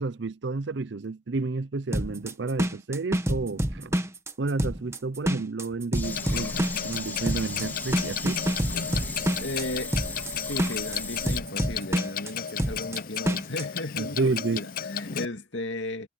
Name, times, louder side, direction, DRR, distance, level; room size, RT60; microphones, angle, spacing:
voice 1, 0.0-4.0 4.4-8.4 14.0-14.7, right 3 dB, 70° right, 0.6 m, -30 dB
sound 1, 1.9-13.6, equal, 15° right, 1.3 m, -28 dB
sound 2, 5.9-11.4, left 3 dB, 10° left, 2.0 m, -37 dB
Clock, 6.0-15.3, left 7 dB, 50° left, 0.7 m, -34 dB
voice 2, 9.4-9.9 10.3-16.1, left 1 dB, 75° left, 2.3 m, -35 dB
head